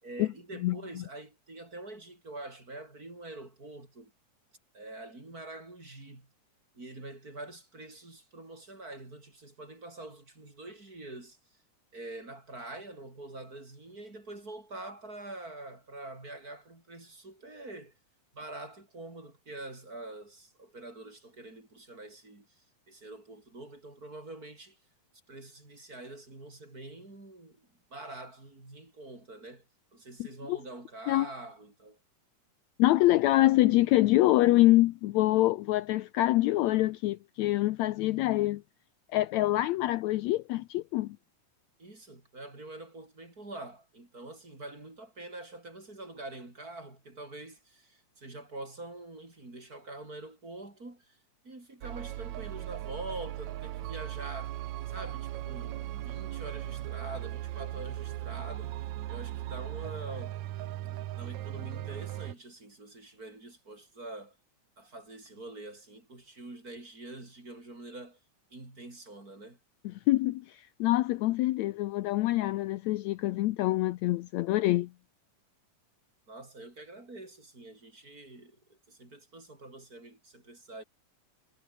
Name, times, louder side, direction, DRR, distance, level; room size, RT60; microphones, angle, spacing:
voice 1, 0.0-4.1 4.7-6.3 6.7-11.6 11.9-18.0 18.3-24.8 25.3-29.6 29.9-32.0 41.8-51.2 51.4-54.6 54.9-60.4 61.1-64.4 64.8-68.2 68.5-69.6 76.3-80.8, right 2 dB, 25° right, 5.8 m, -45 dB
voice 2, 32.8-38.6 39.1-41.2 70.1-74.9, left 17 dB, 80° left, 1.7 m, -25 dB
sound 1, 51.8-62.3, right 14 dB, 70° right, 2.1 m, -38 dB
omnidirectional pair, 3.6 m